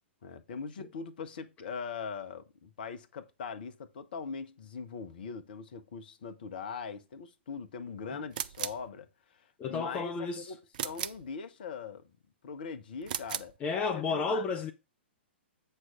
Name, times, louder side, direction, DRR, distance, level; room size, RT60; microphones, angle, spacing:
voice 1, 0.2-9.1 9.4-10.6 10.8-12.1 12.4-13.5 13.9-14.5, left 5 dB, 50° left, 1.2 m, -41 dB
sound 1, 8.3-8.9 10.7-11.3 13.0-13.6, right 10 dB, 45° right, 0.5 m, -36 dB
voice 2, 9.6-10.5 13.6-14.7, left 4 dB, 20° left, 0.7 m, -32 dB
8.0 x 5.4 x 3.7 m
figure-of-eight pair, 110°, 6 cm